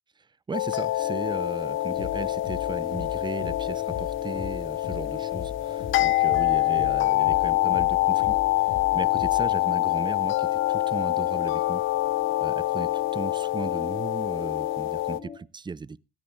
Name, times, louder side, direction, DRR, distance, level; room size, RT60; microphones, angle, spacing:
sound 1, 0.5-15.2, left 16 dB, 90° left, 0.5 m, -25 dB
voice 1, 0.5-5.5 6.0-11.8 12.4-16.0, right 4 dB, 25° right, 0.5 m, -36 dB
sound 2, 1.0-15.4, left 6 dB, 35° left, 2.4 m, -42 dB
sound 3, 2.0-9.6, left 7 dB, 65° left, 6.1 m, -40 dB
17.0 x 14.0 x 2.3 m
cardioid pair, 90°, 20 cm